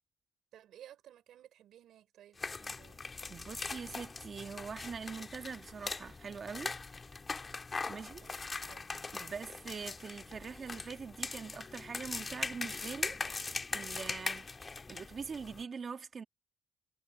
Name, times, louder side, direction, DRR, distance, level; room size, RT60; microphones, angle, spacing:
voice 1, 0.5-3.0 7.9-8.9, right 11 dB, 75° right, 4.1 m, -57 dB
sound 1, 2.4-15.6, left 4 dB, 30° left, 2.2 m, -41 dB
voice 2, 3.3-6.8 7.9-8.2 9.1-13.2 13.7-14.5 14.9-16.2, right 5 dB, 45° right, 1.5 m, -43 dB
cardioid pair, 90°, 0 cm